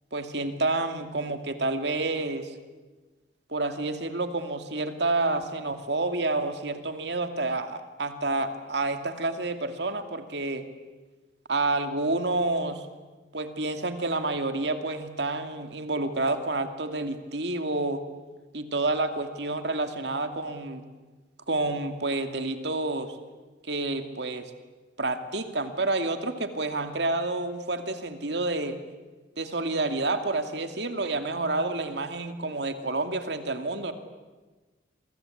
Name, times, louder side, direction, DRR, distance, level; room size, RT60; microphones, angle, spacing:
voice 1, 0.1-2.6 3.5-10.7 11.5-12.9 13.3-18.0 18.5-20.8 21.5-23.2 23.7-24.5 25.0-28.8 29.4-33.9, right 2 dB, 65° right, 7 dB, 2.5 m, -29 dB
28.0 x 24.0 x 8.7 m, 1.3 s
head